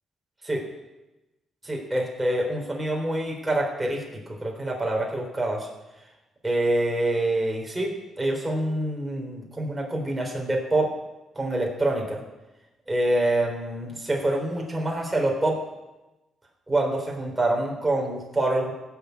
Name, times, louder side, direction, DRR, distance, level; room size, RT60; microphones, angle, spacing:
voice 1, 1.6-5.7 6.4-10.9 11.3-12.2 12.9-15.6 16.7-18.7, right 1 dB, 15° right, 0 dB, 3.8 m, -26 dB
16.0 x 7.1 x 8.1 m, 1.1 s
cardioid pair, 90°, 0 cm